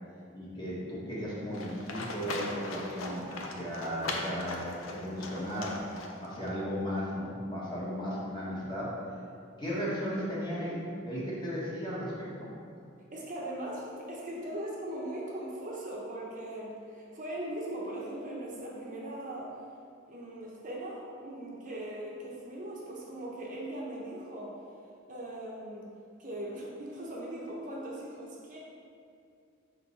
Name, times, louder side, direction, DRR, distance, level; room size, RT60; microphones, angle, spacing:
voice 1, 0.3-5.8 6.2-9.0 9.6-12.5, equal, 20° left, -7 dB, 1.5 m, -35 dB
Livestock farm animals working animals, 1.5-6.5, left 2 dB, 90° left, 0.6 m, -39 dB
voice 2, 13.1-19.6 20.1-24.6 25.1-25.9 26.2-28.6, right 1 dB, 40° right, -4 dB, 0.9 m, -39 dB
6.0 x 3.8 x 4.1 m, 2.4 s
head